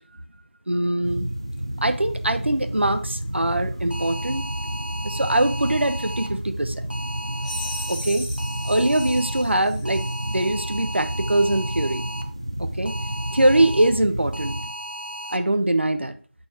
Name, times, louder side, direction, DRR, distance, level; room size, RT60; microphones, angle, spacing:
voice 1, 0.7-1.3 1.8-4.4 5.0-6.9 7.9-8.3 8.6-12.0 12.6-12.9 13.3-14.6 15.3-16.1, right 1 dB, 70° right, 9 dB, 1.0 m, -22 dB
sound 1, 1.0-14.7, equal, 30° right, 0.5 m, -31 dB
sound 2, 3.9-6.3 6.9-8.0 8.4-9.4 9.9-12.2 12.9-13.9 14.3-15.4, equal, 55° right, 1.5 m, -35 dB
sound 3, 7.4-10.4, left 1 dB, 30° left, 2.0 m, -37 dB
13.5 x 4.5 x 2.9 m, 0.41 s
figure-of-eight pair, 175°, 6 cm